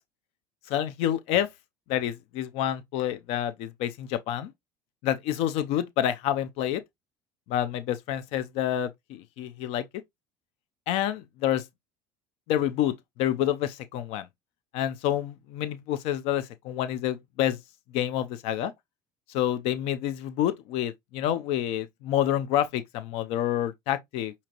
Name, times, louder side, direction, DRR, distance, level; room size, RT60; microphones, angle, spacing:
voice 1, 0.7-1.5 1.9-4.5 5.0-6.8 7.5-9.9 10.9-11.6 12.5-14.3 14.7-17.6 17.9-18.7 19.3-24.3, left 11 dB, 70° left, 0.6 m, -28 dB
6.0 x 2.8 x 2.9 m
supercardioid pair, 115°, 11 cm